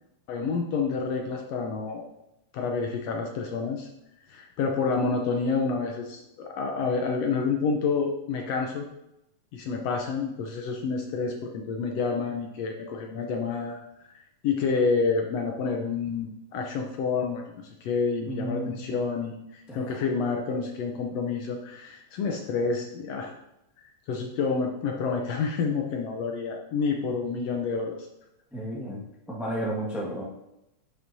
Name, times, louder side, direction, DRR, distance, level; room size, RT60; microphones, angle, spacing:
voice 1, 0.3-2.0 2.5-3.9 4.3-8.9 9.5-23.3 24.1-28.0, left 4 dB, 70° left, 2 dB, 1.7 m, -29 dB
voice 2, 18.2-18.7 19.7-20.0 28.5-29.0 29.3-30.2, right 1 dB, ahead, -4 dB, 0.5 m, -32 dB
10.5 x 6.6 x 2.7 m, 0.87 s
omnidirectional pair, 3.4 m